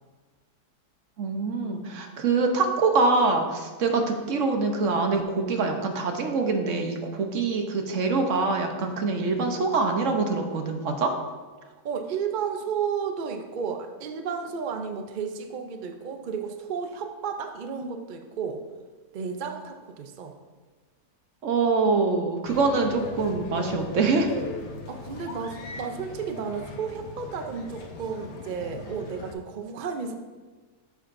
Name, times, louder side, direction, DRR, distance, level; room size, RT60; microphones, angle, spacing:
voice 1, 1.2-11.1 21.4-24.3, right 3 dB, 55° right, 4 dB, 1.1 m, -24 dB
voice 2, 11.6-18.6 19.1-20.3 24.9-30.1, right 6 dB, 80° right, 5 dB, 0.4 m, -33 dB
sound 1, 22.4-29.3, left 4 dB, 85° left, 1.4 m, -39 dB
9.9 x 7.4 x 2.6 m, 1.3 s
omnidirectional pair, 1.7 m